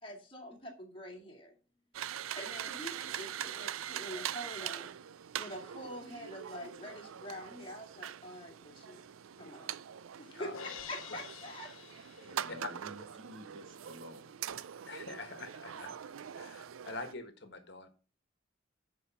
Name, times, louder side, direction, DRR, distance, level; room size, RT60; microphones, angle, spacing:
voice 1, 0.0-1.5 2.4-4.9 5.4-9.0 9.4-9.7 10.2-10.5 10.9-11.7, equal, 25° left, 2.3 m, -45 dB
sound 1, 1.9-17.1, right 10 dB, 80° right, 0.4 m, -43 dB
Crash cymbal, 10.5-12.8, left 7 dB, 85° left, 0.8 m, -48 dB
voice 2, 12.2-14.3, equal, 65° right, 1.9 m, -50 dB
voice 3, 14.9-15.9 16.3-17.9, left 3 dB, 55° left, 1.5 m, -45 dB
11.0 x 4.9 x 5.7 m
head